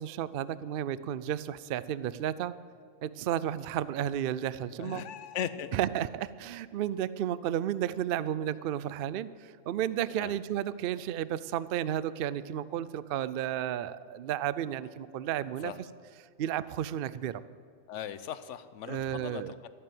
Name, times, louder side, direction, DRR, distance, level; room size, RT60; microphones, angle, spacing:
voice 1, 0.0-2.5 3.0-5.0 5.7-15.7 16.4-17.4 18.9-19.5, right 11 dB, 65° right, 17 dB, 0.6 m, -32 dB
voice 2, 4.8-5.8 10.2-10.4 15.6-15.8 17.9-19.7, left 9 dB, 70° left, 13 dB, 1.0 m, -38 dB
13.5 x 9.0 x 7.7 m, 2.2 s
omnidirectional pair, 1.4 m